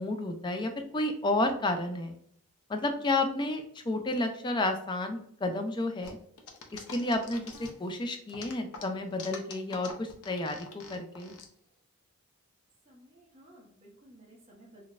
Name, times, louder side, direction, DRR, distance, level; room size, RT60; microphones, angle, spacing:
voice 1, 0.0-2.2 2.7-6.2 6.7-11.3, left 2 dB, 20° left, 6 dB, 0.3 m, -31 dB
sound 1, 6.0-7.9 8.3-11.4, left 5 dB, 75° left, 0.6 m, -45 dB
voice 2, 12.8-14.8, right 1 dB, 30° right, -4 dB, 0.9 m, -56 dB
3.9 x 2.1 x 2.4 m, 0.65 s
head